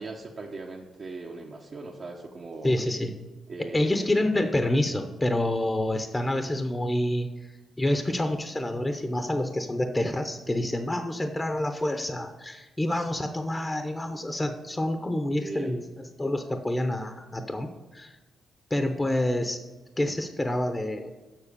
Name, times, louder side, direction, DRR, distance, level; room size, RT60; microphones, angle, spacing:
voice 1, 0.0-2.7 3.5-4.1 12.9-13.1 15.4-15.8 16.5-16.6, right 3 dB, 50° right, -2 dB, 1.0 m, -39 dB
voice 2, 2.6-3.1 3.7-7.5 7.8-18.1 18.7-19.6 20.0-21.1, left 1 dB, 15° left, 6 dB, 0.8 m, -28 dB
7.4 x 6.0 x 6.7 m, 1.2 s
cardioid pair, 85°, 0 cm